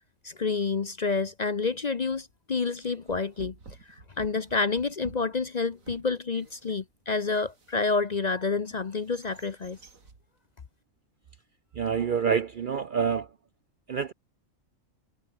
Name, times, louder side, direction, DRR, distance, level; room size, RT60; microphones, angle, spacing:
voice 1, 0.2-3.5 4.2-9.8, left 4 dB, 40° left, 0.7 m, -28 dB
sound 1, 2.1-2.4 2.8-8.2 8.7-10.3, right 4 dB, 85° right, 3.1 m, -51 dB
voice 2, 11.7-13.3 13.9-14.1, right 7 dB, 55° right, 0.6 m, -27 dB
omnidirectional pair, 1.4 m